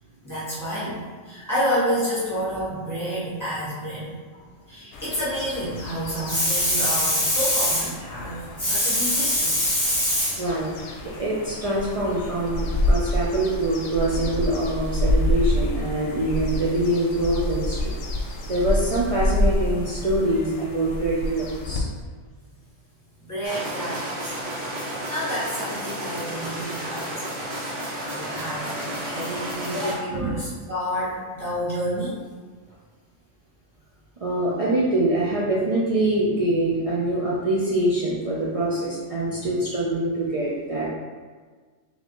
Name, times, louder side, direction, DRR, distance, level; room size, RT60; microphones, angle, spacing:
voice 1, 0.2-1.0 1.2-4.1 4.7-10.4 23.3-24.3 25.1-27.2 27.5-27.6 28.0-32.2, equal, 15° left, -10 dB, 1.5 m, -26 dB
sound 1, 4.9-21.8, left 1 dB, 65° left, 0.9 m, -28 dB
voice 2, 10.4-10.7 11.0-17.9 18.5-21.9 30.1-30.4 34.2-40.9, right 1 dB, 60° right, -6 dB, 0.3 m, -24 dB
sound 2, 23.4-29.9, right 1 dB, 45° right, 1.0 m, -32 dB
4.0 x 3.6 x 3.0 m, 1.5 s
omnidirectional pair, 1.4 m